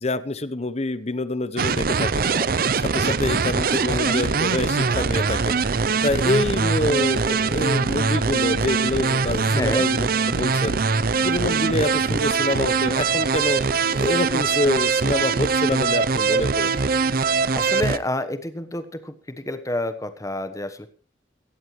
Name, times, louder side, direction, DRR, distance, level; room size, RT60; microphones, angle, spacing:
voice 1, 0.0-13.6 13.9-16.7, left 2 dB, 35° left, 15 dB, 0.9 m, -26 dB
sound 1, 1.6-18.0, right 5 dB, 50° right, 0.6 m, -22 dB
voice 2, 9.5-9.9 17.5-20.9, left 1 dB, 15° left, 10 dB, 1.2 m, -29 dB
17.0 x 13.5 x 3.2 m, 0.39 s
head